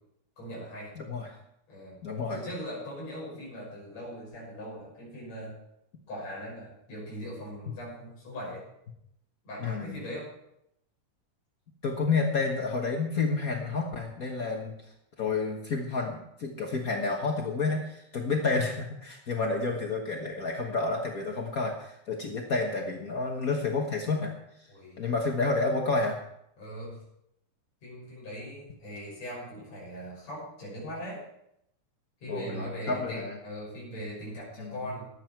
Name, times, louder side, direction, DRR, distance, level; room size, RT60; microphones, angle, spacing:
voice 1, 0.4-0.9 1.7-2.0 2.3-5.6 6.1-8.6 9.4-10.3 22.3-22.5 24.7-25.0 26.6-27.0 27.8-31.2 32.2-35.1, equal, 55° left, -6 dB, 7.2 m, -40 dB
voice 2, 1.0-1.4 2.0-2.4 9.6-10.0 11.8-14.7 15.2-24.3 25.0-26.2 32.3-33.4 34.6-34.8, left 3 dB, 80° left, 0 dB, 0.7 m, -30 dB
19.5 x 7.9 x 4.6 m, 0.78 s
omnidirectional pair, 3.7 m